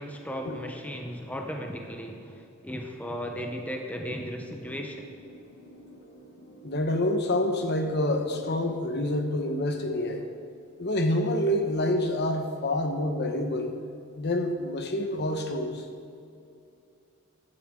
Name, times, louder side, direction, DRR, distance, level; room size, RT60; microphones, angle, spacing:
voice 1, 0.0-5.1, equal, 5° left, 2 dB, 0.8 m, -36 dB
sound 1, 4.0-9.6, equal, 70° left, 2.9 m, -50 dB
voice 2, 6.6-10.3 10.8-13.7 14.2-15.9, left 1 dB, 55° left, 5 dB, 1.0 m, -27 dB
15.5 x 11.0 x 3.7 m, 2.5 s
head